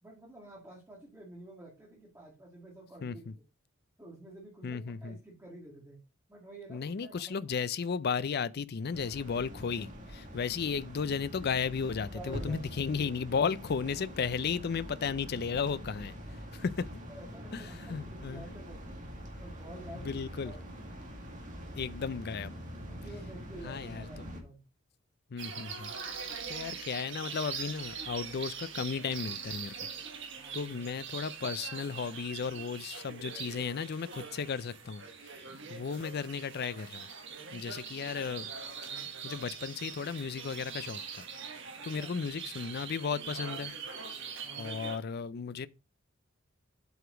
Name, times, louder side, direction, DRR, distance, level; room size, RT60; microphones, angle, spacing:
voice 1, 0.0-3.3 4.0-6.0 6.3-7.4 12.1-13.2 17.1-19.0 19.4-20.6 22.9-24.6 26.5-26.6 30.4-30.8 35.5-35.8 38.9-39.1 41.8-42.1 44.4-44.7, right 1 dB, 15° right, 2.0 m, -50 dB
voice 2, 3.0-3.3 4.6-5.2 6.7-16.2 16.5-16.9 17.5-18.4 19.9-20.5 21.8-22.5 23.6-24.0 25.3-29.7 30.5-35.4 35.7-37.1 37.5-38.5 39.2-41.2 41.8-43.7 44.6-45.7, left 6 dB, 50° left, 0.4 m, -34 dB
sound 1, 8.9-24.4, equal, 40° right, 2.1 m, -44 dB
sound 2, 25.4-45.0, right 6 dB, 65° right, 1.7 m, -42 dB
8.0 x 4.9 x 5.0 m
head